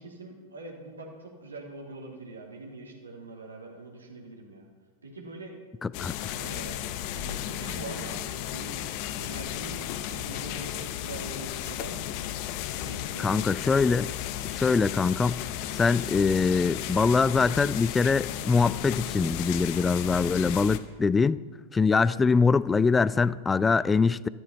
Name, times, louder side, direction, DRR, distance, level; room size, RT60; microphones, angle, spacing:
voice 1, 0.0-4.7 5.0-5.6 6.3-8.8 9.1-12.1 12.7-13.5 22.0-22.2, right 2 dB, 75° right, 2.8 m, -43 dB
voice 2, 5.8-6.3 13.2-14.1 14.4-15.4 15.7-21.4 21.7-24.3, left 4 dB, 15° left, 0.4 m, -23 dB
sound 1, 5.9-20.8, left 12 dB, 45° left, 0.9 m, -34 dB
13.5 x 12.5 x 5.5 m
figure-of-eight pair, 90°, 0 cm